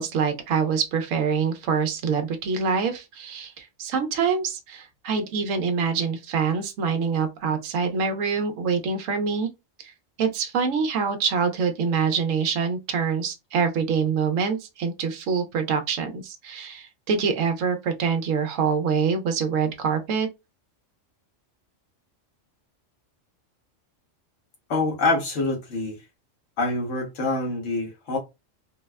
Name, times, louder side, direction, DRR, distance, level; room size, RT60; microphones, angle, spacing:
voice 1, 0.0-9.5 9.8-9.9 10.2-20.3, right 5 dB, 85° right, 1.0 m, -25 dB
voice 2, 24.7-26.0 26.6-28.2, left 2 dB, 85° left, 1.5 m, -25 dB
4.0 x 2.1 x 2.2 m
omnidirectional pair, 1.3 m